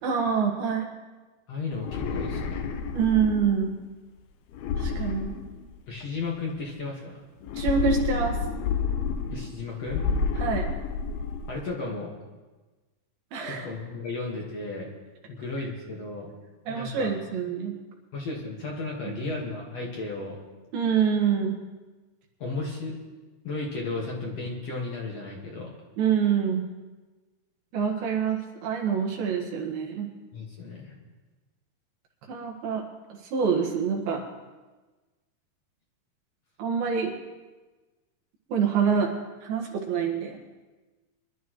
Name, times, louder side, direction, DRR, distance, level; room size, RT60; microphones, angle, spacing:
voice 1, 0.0-0.9 2.9-3.8 4.8-5.3 7.5-8.4 10.4-10.7 13.3-13.6 16.7-17.7 19.0-19.2 20.7-21.6 26.0-26.7 27.7-30.1 32.3-32.8 33.1-34.2 36.6-37.1 38.5-39.1 39.4-40.4, right 6 dB, 75° right, 0 dB, 3.5 m, -26 dB
voice 2, 1.5-2.7 5.9-7.2 9.3-10.1 11.5-12.1 13.5-14.9 15.3-16.3 16.7-17.1 18.1-20.4 22.4-23.0 23.4-25.7 30.3-30.9, left 3 dB, 50° left, -2 dB, 2.3 m, -34 dB
sound 1, 1.7-3.7 4.5-6.0 7.4-9.6 9.9-11.6, left 5 dB, 85° left, 2.8 m, -30 dB
23.5 x 12.0 x 3.1 m, 1.2 s
omnidirectional pair, 4.4 m